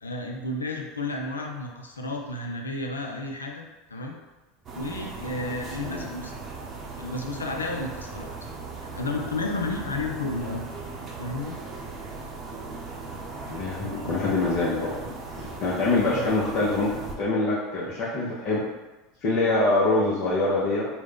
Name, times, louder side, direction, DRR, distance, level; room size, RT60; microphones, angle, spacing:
voice 1, 0.0-3.6 3.9-4.2 4.7-6.4 7.0-8.3 8.9-10.7 11.2-11.6 14.0-14.2 16.0-16.3, left 2 dB, 85° left, 1 dB, 0.4 m, -32 dB
sound 1, 4.6-17.1, right 3 dB, 35° right, 0.7 m, -38 dB
voice 2, 13.5-18.6 19.2-20.9, left 2 dB, 50° left, -7 dB, 0.7 m, -25 dB
3.5 x 2.1 x 3.5 m, 1.1 s
hypercardioid pair, 80°, 0 cm